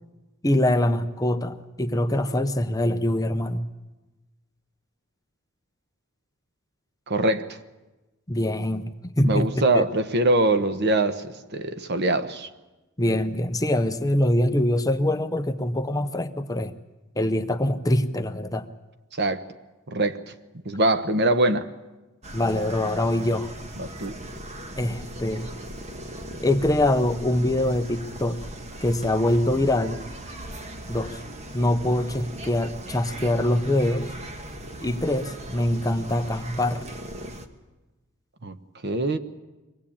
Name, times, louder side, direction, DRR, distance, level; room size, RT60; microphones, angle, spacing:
voice 1, 0.4-3.6 8.3-9.8 13.0-16.7 17.2-18.7 22.3-23.5 24.8-25.5 26.4-28.4 28.8-30.0 30.9-31.2 31.5-34.1 34.8-36.8, left 1 dB, 15° left, 0.8 m, -24 dB
voice 2, 7.1-7.6 9.2-12.5 19.2-19.4 19.9-20.3 20.6-21.7 23.8-24.2 38.4-38.6 38.8-39.2, right 2 dB, 50° right, 1.1 m, -23 dB
sound 1, 22.2-37.5, right 1 dB, 30° right, 1.4 m, -39 dB
24.0 x 17.5 x 8.7 m
head